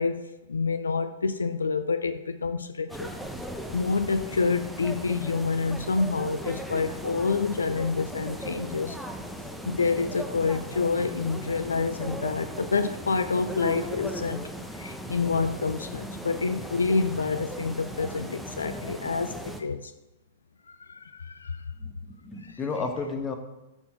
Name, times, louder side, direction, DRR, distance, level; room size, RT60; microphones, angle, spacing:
voice 1, 0.0-3.1 3.7-9.0 9.7-19.9 20.7-21.7 22.4-22.6, left 4 dB, 80° left, 11 dB, 0.4 m, -28 dB
sound 1, 2.9-19.6, equal, ahead, 0.8 m, -38 dB
voice 2, 21.8-23.4, left 4 dB, 20° left, 5 dB, 1.2 m, -32 dB
10.5 x 4.5 x 4.5 m, 0.99 s
figure-of-eight pair, 105°, 0 cm